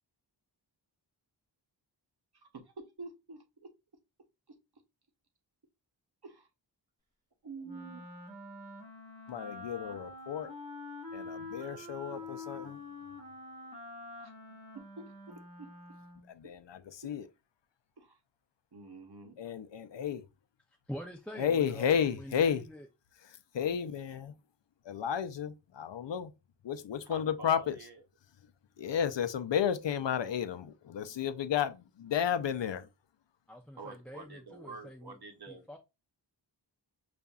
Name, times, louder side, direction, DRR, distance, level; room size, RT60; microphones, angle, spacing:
voice 1, 2.3-3.7 4.5-4.6 6.2-6.5 7.4-8.0 14.2-14.3 14.7-15.7 16.4-16.6 18.0-18.2 18.7-19.4 27.1-28.0 33.8-35.7, right 3 dB, 60° right, 0.9 m, -48 dB
Wind instrument woodwind instrument, 7.6-16.3, left 2 dB, 15° right, 2.1 m, -46 dB
voice 2, 9.3-10.5 11.1-12.8 16.3-17.3 19.4-20.3 21.4-22.6 23.2-24.3 24.8-26.3 26.6-27.8 28.8-32.9, left 8 dB, 75° left, 0.6 m, -32 dB
voice 3, 20.9-22.9 33.5-35.2 35.5-35.8, equal, 5° left, 0.5 m, -45 dB
6.7 x 2.5 x 2.3 m
wide cardioid pair, 80°, 43 cm